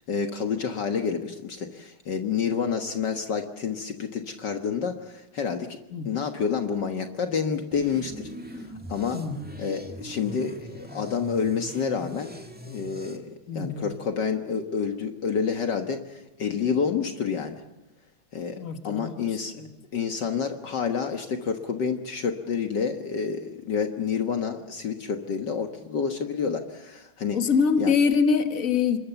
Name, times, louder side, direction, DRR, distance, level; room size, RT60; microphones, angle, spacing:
voice 1, 0.1-5.8 6.1-8.6 8.9-9.2 9.6-12.3 12.7-17.6 18.3-18.6 18.8-19.5 19.9-27.4 27.8-27.9, left 6 dB, 60° left, 5 dB, 2.0 m, -29 dB
sound 1, 7.7-13.2, right 1 dB, 5° right, 2.0 m, -41 dB
voice 2, 9.1-9.5 13.5-13.8 18.6-19.1 19.6-19.7 27.3-29.0, left 5 dB, 40° left, 7 dB, 2.1 m, -24 dB
27.5 x 21.5 x 7.0 m, 1.0 s
omnidirectional pair, 2.2 m